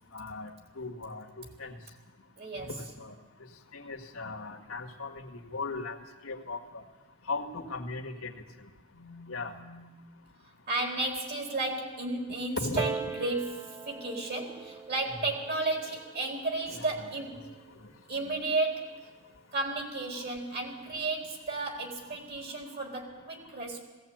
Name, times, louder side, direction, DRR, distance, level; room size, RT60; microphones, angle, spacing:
voice 1, 0.1-0.5 0.8-1.8 2.5-3.1 3.7-6.0 6.2-6.8 7.3-8.3 9.3-9.5 12.6-13.2 16.7-17.1 18.2-18.4, left 3 dB, 85° left, 2 dB, 1.9 m, -38 dB
voice 2, 2.4-2.7 8.9-9.8 10.7-17.5 18.1-19.1 19.5-23.8, right 2 dB, 50° right, 1 dB, 4.2 m, -33 dB
Piano, 12.8-18.0 18.8-18.9, right 4 dB, 15° right, 0.6 m, -42 dB
19.5 x 17.0 x 8.8 m, 1.3 s
head